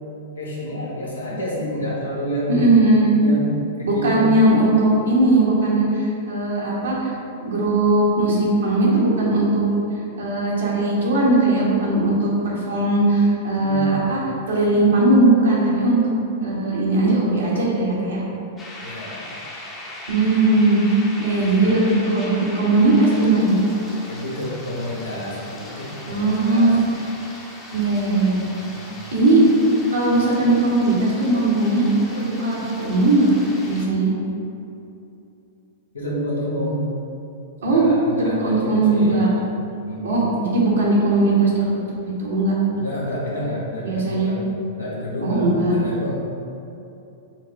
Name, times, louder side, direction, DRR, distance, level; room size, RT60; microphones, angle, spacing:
voice 1, 0.4-2.6 3.2-4.3 13.6-14.1 18.8-19.4 24.1-26.7 28.6-29.0 35.9-36.9 37.6-39.3 39.9-40.3 42.7-44.4 44.7-46.1, equal, 90° left, -5 dB, 1.1 m, -29 dB
voice 2, 2.5-3.1 3.8-7.1 7.4-9.6 10.2-14.2 14.5-16.0 16.4-18.2 20.1-20.8 21.2-23.5 26.1-26.8 27.7-28.4 29.1-29.4 29.9-33.4 33.7-34.1 37.6-37.9 38.2-39.3 40.0-41.6 42.0-42.5 43.8-44.3 45.2-45.8, right 2 dB, 80° right, -5 dB, 1.1 m, -19 dB
sound 1, 18.6-33.9, left 1 dB, 20° left, 0.7 m, -39 dB
4.5 x 2.1 x 4.5 m, 2.8 s
hypercardioid pair, 110°, 0 cm